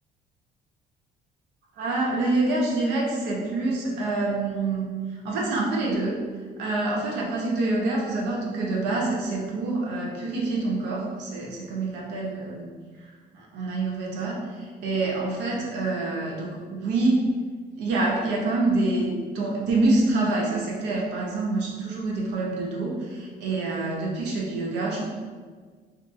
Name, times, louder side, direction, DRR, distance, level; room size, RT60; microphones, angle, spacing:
voice 1, 1.8-4.9 5.2-6.2 6.6-12.7 13.3-17.2 17.8-19.1 19.3-25.0, right 2 dB, 85° right, -2 dB, 0.8 m, -26 dB
2.7 x 2.6 x 3.6 m, 1.6 s
cardioid pair, 110°, 17 cm